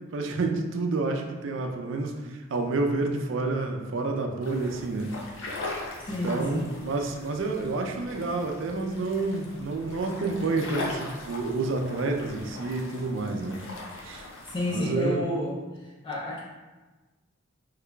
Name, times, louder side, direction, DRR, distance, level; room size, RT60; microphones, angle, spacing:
voice 1, 0.1-5.1 6.2-13.6 14.0-14.3 14.7-15.2, right 3 dB, 65° right, 3 dB, 0.4 m, -29 dB
sound 1, 4.4-14.9, left 2 dB, 70° left, 0.6 m, -40 dB
voice 2, 6.1-6.7 14.5-15.6 16.0-16.4, left 1 dB, 25° left, -5 dB, 0.4 m, -30 dB
3.7 x 3.1 x 2.2 m, 1.2 s
head